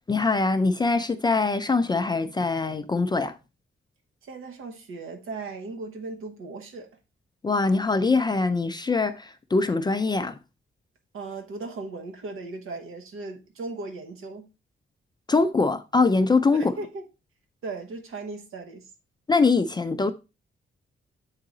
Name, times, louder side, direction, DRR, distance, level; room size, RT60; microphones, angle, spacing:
voice 1, 0.1-3.4 7.4-10.3 15.3-16.7 19.3-20.1, left 3 dB, 20° left, 0.4 m, -23 dB
voice 2, 4.2-6.9 11.1-14.5 16.5-17.1 17.6-18.9, right 3 dB, 85° right, 1.1 m, -37 dB
7.4 x 4.9 x 3.8 m
wide cardioid pair, 170°, 21 cm